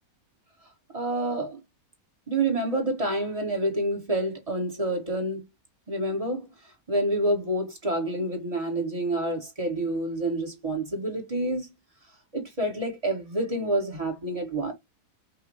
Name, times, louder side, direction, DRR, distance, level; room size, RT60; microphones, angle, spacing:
voice 1, 0.9-1.6 2.3-5.4 5.9-6.5 6.9-11.7 12.3-14.7, right 1 dB, 20° right, 1.6 m, -28 dB
5.3 x 2.6 x 3.1 m
omnidirectional pair, 1.8 m